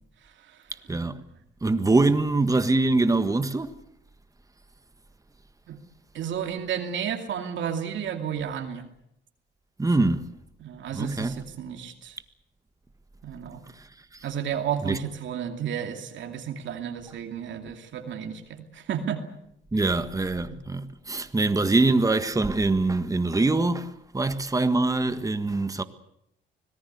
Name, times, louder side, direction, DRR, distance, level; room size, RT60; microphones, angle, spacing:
voice 1, 0.2-0.6 5.7-5.8 6.1-8.9 10.6-12.2 13.2-13.6 14.2-19.2 20.5-20.6, right 8 dB, 70° right, 2.6 m, -32 dB
voice 2, 1.6-3.7 9.8-10.3 10.9-11.4 14.8-15.0 19.7-25.8, right 2 dB, 15° right, 1.6 m, -24 dB
25.0 x 19.0 x 8.1 m
cardioid pair, 90°, 20 cm